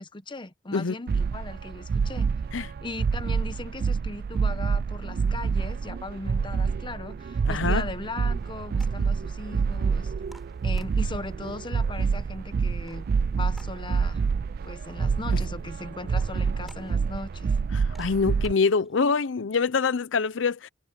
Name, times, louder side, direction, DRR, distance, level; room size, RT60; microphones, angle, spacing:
voice 1, 0.0-2.3 2.8-10.1 10.6-13.0 13.3-14.2 14.6-17.5, left 2 dB, 25° left, 0.9 m, -38 dB
sound 1, 1.1-18.5, right 5 dB, 50° right, 0.3 m, -27 dB
voice 2, 7.4-7.9 17.7-20.7, left 5 dB, 85° left, 0.6 m, -25 dB
sound 2, 8.4-19.2, equal, ahead, 4.0 m, -59 dB
head